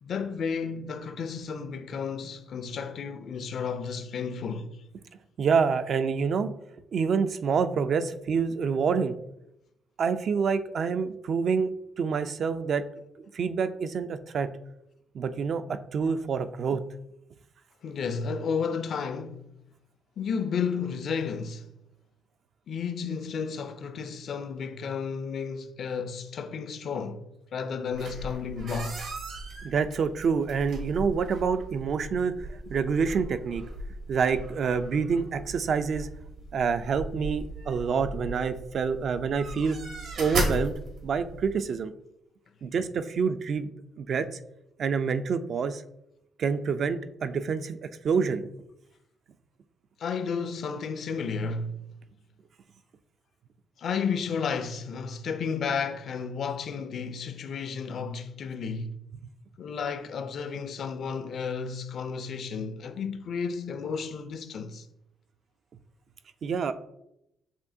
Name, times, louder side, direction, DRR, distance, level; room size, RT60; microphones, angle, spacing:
voice 1, 0.0-4.7 17.8-19.5 20.2-21.7 22.7-29.0 50.0-51.8 53.8-59.0 59.6-64.9, left 6 dB, 60° left, 0.4 m, -32 dB
voice 2, 5.4-6.5 6.9-9.2 10.0-11.7 12.0-12.9 13.2-14.5 15.1-16.8 29.6-33.6 34.1-36.1 36.5-39.8 40.2-40.7 41.0-41.9 42.6-44.4 44.8-45.8 46.4-48.4 66.4-66.7, right 5 dB, 55° right, 0.3 m, -27 dB
sound 1, 27.9-41.5, right 1 dB, 75° right, 1.2 m, -37 dB
6.8 x 2.7 x 2.6 m
cardioid pair, 90°, 0 cm